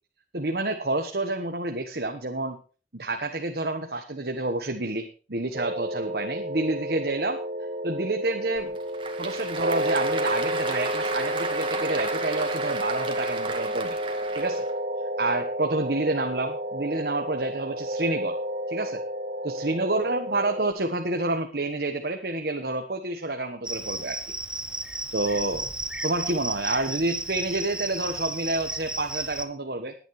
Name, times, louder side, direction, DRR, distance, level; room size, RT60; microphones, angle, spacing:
voice 1, 0.3-2.6 2.9-7.4 7.8-8.8 9.2-14.0 14.3-14.6 15.2-18.4 18.7-19.0 19.4-24.3 25.1-25.7 26.0-29.9, right 2 dB, 60° right, 5 dB, 1.4 m, -29 dB
sound 1, 5.5-20.7, equal, 45° right, 1.2 m, -31 dB
Applause / Crowd, 8.6-14.7, right 4 dB, 30° right, 2.0 m, -34 dB
Cricket, 23.6-29.5, right 1 dB, 5° right, 0.9 m, -33 dB
20.5 x 9.8 x 3.3 m, 0.38 s
head